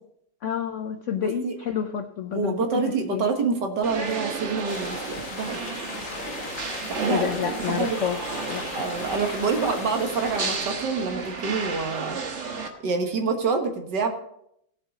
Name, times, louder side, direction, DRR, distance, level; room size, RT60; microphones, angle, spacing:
voice 1, 0.4-3.3 7.1-8.2 8.5-8.8, left 8 dB, 70° left, 8 dB, 0.7 m, -29 dB
voice 2, 1.2-1.6 2.3-5.6 6.9-8.0 8.6-12.2 12.8-14.1, right 4 dB, 70° right, 4 dB, 2.0 m, -27 dB
sound 1, 3.8-12.7, right 4 dB, 45° right, 1.4 m, -33 dB
sound 2, 4.7-10.6, left 6 dB, 90° left, 1.8 m, -38 dB
17.5 x 7.2 x 4.1 m, 0.74 s
omnidirectional pair, 2.0 m